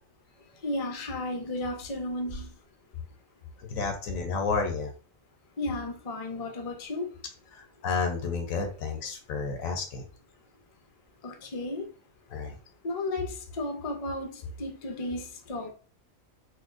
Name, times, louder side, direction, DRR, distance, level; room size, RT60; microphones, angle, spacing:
voice 1, 0.5-2.6 5.6-7.1 11.2-11.9 12.8-15.7, left 2 dB, 45° left, 3 dB, 0.4 m, -34 dB
voice 2, 3.7-4.9 7.5-10.0 12.3-12.5, left 4 dB, 85° left, 5 dB, 1.0 m, -31 dB
4.2 x 2.2 x 2.4 m, 0.38 s
omnidirectional pair, 1.4 m